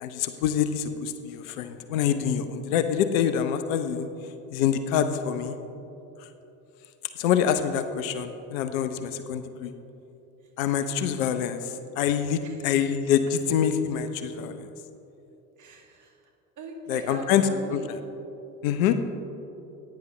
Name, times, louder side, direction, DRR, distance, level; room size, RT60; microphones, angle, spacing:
voice 1, 0.0-4.1 4.5-5.6 7.2-9.7 10.6-14.7 16.9-18.0 18.6-18.9, left 8 dB, 65° left, 10 dB, 0.7 m, -26 dB
voice 2, 15.6-16.1 16.6-17.9, right 2 dB, 40° right, 1 dB, 2.0 m, -40 dB
15.0 x 9.5 x 3.2 m, 2.9 s
figure-of-eight pair, 65°, 45 cm